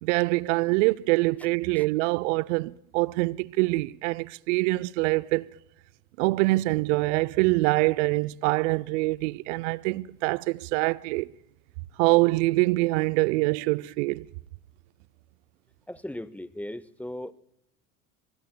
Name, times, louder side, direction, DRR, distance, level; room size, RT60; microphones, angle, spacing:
voice 1, 0.0-5.5 6.2-11.3 12.0-14.3, right 23 dB, 60° right, 0.5 m, -24 dB
voice 2, 15.9-17.3, left 1 dB, 5° left, 0.6 m, -37 dB
25.0 x 23.5 x 2.2 m
hypercardioid pair, 75°, 41 cm